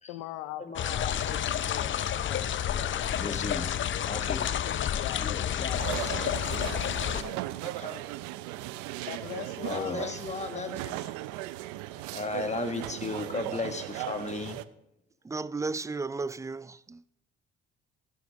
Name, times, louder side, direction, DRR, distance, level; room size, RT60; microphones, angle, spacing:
voice 1, 0.1-3.2 4.6-5.7 7.0-7.4 9.0-10.8, left 14 dB, 85° left, 0.6 m, -42 dB
voice 2, 0.6-3.7 4.0-4.4 5.2-6.3 6.6-6.8 7.8-8.0 9.6-11.0 12.1-14.6, left 3 dB, 25° left, 1.5 m, -36 dB
sound 1, 0.8-7.2, left 10 dB, 40° left, 0.6 m, -30 dB
sound 2, 5.7-14.6, right 15 dB, 85° right, 0.5 m, -37 dB
voice 3, 15.2-17.1, right 3 dB, 10° right, 0.3 m, -34 dB
11.5 x 11.5 x 3.5 m
supercardioid pair, 60°, 29 cm